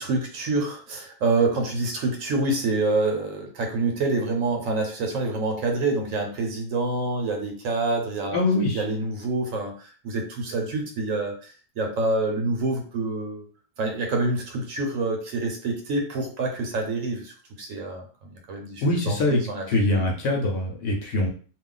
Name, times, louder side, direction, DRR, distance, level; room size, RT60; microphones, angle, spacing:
voice 1, 0.0-8.4 8.7-13.5 13.8-20.0, right 3 dB, 80° right, 2 dB, 1.1 m, -27 dB
voice 2, 8.3-8.8 18.8-19.4 19.7-21.3, left 2 dB, 70° left, 0 dB, 1.0 m, -23 dB
2.4 x 2.4 x 3.8 m, 0.41 s
omnidirectional pair, 1.4 m